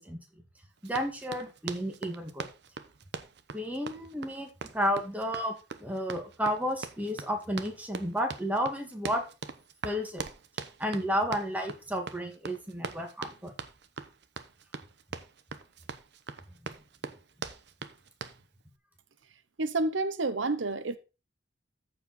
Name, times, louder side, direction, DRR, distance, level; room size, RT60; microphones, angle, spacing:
voice 1, 0.8-2.5 3.5-9.2 9.8-10.2 10.8-13.5, equal, 10° right, 2.0 m, -32 dB
Run, 0.8-18.4, right 4 dB, 65° right, 0.9 m, -42 dB
voice 2, 19.6-21.0, right 2 dB, 90° right, 0.9 m, -29 dB
14.0 x 4.9 x 4.1 m
head